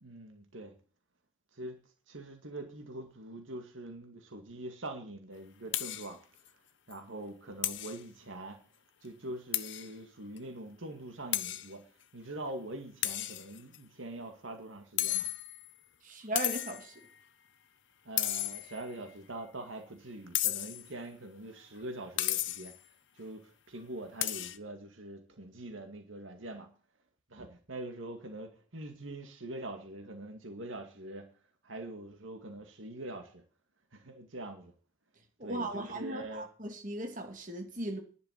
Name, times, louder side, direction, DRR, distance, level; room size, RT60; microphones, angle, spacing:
voice 1, 0.0-0.7 1.5-1.8 2.1-6.2 6.9-8.6 9.0-11.8 12.1-15.3 18.1-22.7 23.2-26.7 27.3-31.3 31.6-33.4 33.9-34.7 35.4-36.4, right 1 dB, 70° right, 2.1 m, -43 dB
sound 1, 5.7-6.1 6.5-6.6 6.9-7.0 7.6-8.0 9.5-9.9 10.4-10.5 11.3-11.7 13.0-13.8 15.0-15.7 16.4-16.9 18.2-18.9 20.3-20.9 22.2-22.8 24.2-24.6, left 14 dB, 60° left, 0.8 m, -33 dB
voice 2, 16.0-17.1 35.4-38.0, right 1 dB, 40° right, 2.5 m, -37 dB
11.0 x 6.7 x 8.3 m
head